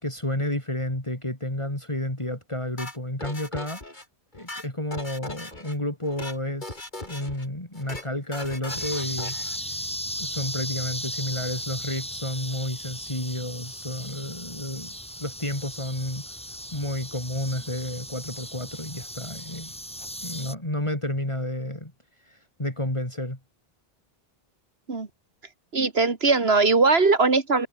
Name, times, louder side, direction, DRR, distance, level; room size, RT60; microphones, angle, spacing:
voice 1, 0.0-3.8 4.3-9.8 10.2-16.2 16.7-19.7 20.2-21.9 22.2-23.4, left 1 dB, 30° left, 4.5 m, -31 dB
sound 1, 2.8-4.0 4.3-5.7 6.0-6.4 6.6-7.5 7.7-8.1 8.3-9.6, left 2 dB, 50° left, 4.4 m, -38 dB
sound 2, 8.7-20.5, equal, 5° left, 6.8 m, -36 dB
voice 2, 25.7-27.7, right 4 dB, 85° right, 2.5 m, -20 dB
omnidirectional pair, 1.0 m